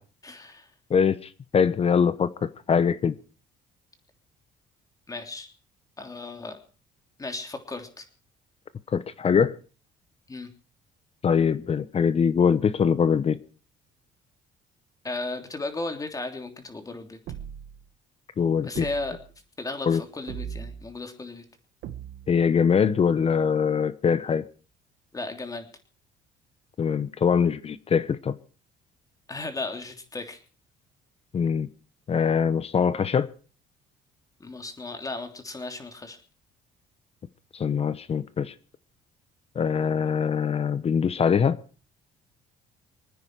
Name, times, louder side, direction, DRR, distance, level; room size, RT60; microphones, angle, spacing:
voice 1, 0.2-0.7 5.1-5.5 6.0-6.6 7.2-8.0 10.3-10.5 15.0-17.2 18.6-19.2 19.6-21.4 25.1-25.7 29.3-30.4 34.4-36.2, left 2 dB, 20° left, 3.2 m, -35 dB
voice 2, 0.9-3.1 8.9-9.5 11.2-13.4 18.4-18.9 19.9-20.0 22.3-24.5 26.8-28.4 31.3-31.7 32.1-33.3 37.5-38.5 39.5-41.6, left 6 dB, 35° left, 0.9 m, -23 dB
sound 1, 17.3-17.9 18.7-19.3 20.3-20.9 21.8-22.4, right 9 dB, 85° right, 1.7 m, -39 dB
26.0 x 9.7 x 4.7 m
cardioid pair, 110°, 17 cm